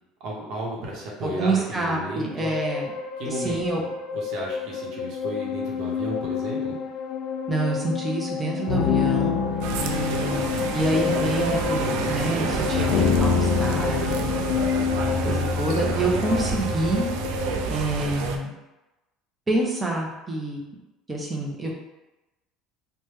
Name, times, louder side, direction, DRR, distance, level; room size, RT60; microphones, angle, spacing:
voice 1, 0.2-2.5 3.2-3.9 4.1-6.8 15.0-15.5, right 1 dB, 55° right, -3 dB, 0.9 m, -34 dB
voice 2, 1.2-2.9 3.2-3.8 7.5-9.4 9.8-14.3 15.0-17.1 17.7-18.5 19.5-20.6 21.1-21.7, right 2 dB, 15° right, -2 dB, 0.6 m, -27 dB
sound 1, 2.4-17.7, left 6 dB, 60° left, 0.3 m, -27 dB
sound 2, 9.6-18.4, right 6 dB, 80° right, 0.3 m, -29 dB
3.2 x 2.1 x 3.1 m, 1.0 s
cardioid pair, 140°, 0 cm